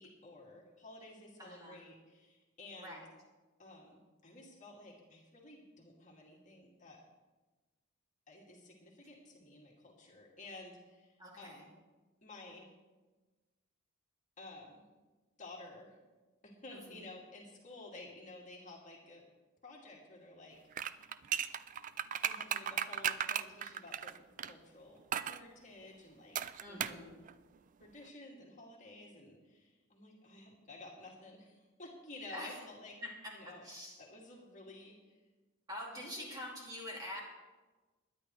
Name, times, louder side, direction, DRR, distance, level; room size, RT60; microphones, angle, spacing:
voice 1, 0.0-3.0 3.6-7.0 8.3-11.7 12.2-12.7 14.4-14.8 15.4-16.0 16.4-19.2 19.6-21.1 22.2-24.2 24.5-26.4 26.7-27.2 27.8-33.0 33.3-33.6 34.0-35.2 35.9-36.3, left 2 dB, 35° left, -2 dB, 2.3 m, -53 dB
voice 2, 1.4-1.8 2.8-3.0 11.2-11.6 16.7-17.1 26.6-27.1 32.3-32.6 33.0-34.0 35.7-37.2, left 1 dB, 20° right, -3 dB, 2.5 m, -46 dB
sound 1, 20.7-24.5 25.1-25.4 26.4-27.0 27.3-27.4, right 9 dB, 35° right, 0.3 m, -36 dB
21.5 x 10.0 x 3.2 m, 1.2 s
head